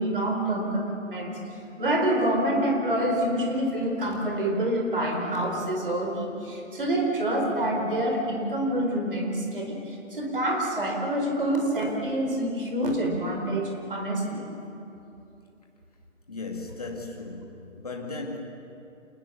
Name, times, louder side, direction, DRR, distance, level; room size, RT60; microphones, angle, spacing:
voice 1, 0.0-1.4 1.8-14.4, right 1 dB, 40° right, 1 dB, 4.4 m, -27 dB
voice 2, 16.3-18.4, left 3 dB, 30° left, 0 dB, 2.3 m, -36 dB
27.5 x 20.0 x 7.0 m, 2.8 s
hypercardioid pair, 180°, 39 cm